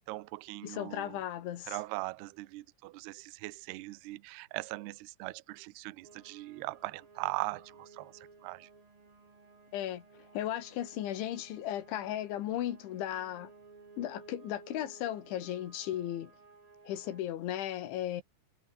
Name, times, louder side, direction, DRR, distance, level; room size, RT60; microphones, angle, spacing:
voice 1, 0.1-1.2 1.7-8.7, right 21 dB, 75° right, 2.7 m, -40 dB
voice 2, 0.6-1.8 9.7-10.0 10.3-13.5 14.0-16.3 16.9-18.2, left 12 dB, 80° left, 4.3 m, -36 dB
sound 1, 6.0-17.2, right 4 dB, 50° right, 9.3 m, -57 dB
omnidirectional pair, 5.4 m